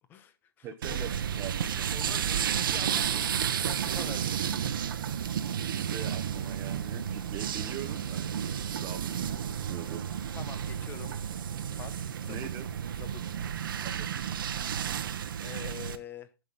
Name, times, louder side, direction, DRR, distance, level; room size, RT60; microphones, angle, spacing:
voice 1, 0.1-1.0 1.9-4.6 10.3-11.2 11.8-12.6 13.0-13.4 15.1-16.3, left 8 dB, 15° left, 12 dB, 0.9 m, -46 dB
voice 2, 0.6-1.1 1.4-1.9 5.6-8.2 8.8-10.0 12.3-12.7 13.8-14.1 14.4-14.7, right 8 dB, 20° right, 3 dB, 1.0 m, -42 dB
sound 1, 0.8-16.0, right 8 dB, 60° right, 1.0 m, -32 dB
11.5 x 6.0 x 4.0 m, 0.28 s
hypercardioid pair, 150°, 13 cm